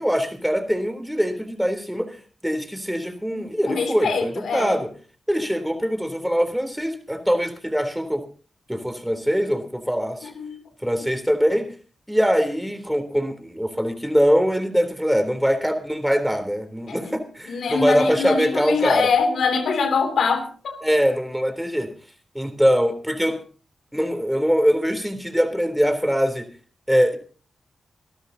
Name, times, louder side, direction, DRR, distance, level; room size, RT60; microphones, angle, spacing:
voice 1, 0.0-2.2 2.4-4.9 5.3-8.2 8.7-10.3 10.8-11.7 12.1-19.1 20.8-21.9 22.3-23.4 23.9-26.5 26.9-27.2, equal, 5° right, 7 dB, 3.4 m, -22 dB
voice 2, 3.3-4.8 10.3-10.6 16.9-17.2 17.5-20.8, left 5 dB, 80° left, 7 dB, 2.8 m, -24 dB
26.0 x 13.0 x 2.8 m, 0.39 s
cardioid pair, 50°, 0 cm